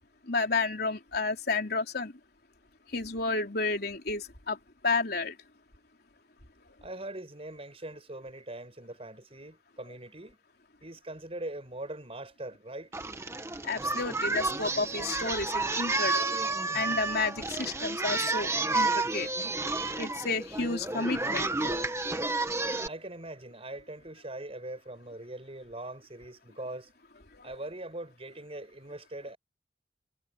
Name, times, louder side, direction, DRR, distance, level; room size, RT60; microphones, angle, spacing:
voice 1, 0.3-2.1 2.9-4.6 4.8-5.3 13.6-16.4 16.7-19.3 20.0-21.8 27.3-27.5, left 3 dB, 60° left, 3.6 m, -31 dB
voice 2, 6.8-10.4 10.8-12.9 22.8-26.9 27.4-29.4, right 1 dB, 35° right, 6.2 m, -41 dB
Singing, 12.9-22.9, right 3 dB, 15° right, 1.7 m, -31 dB
head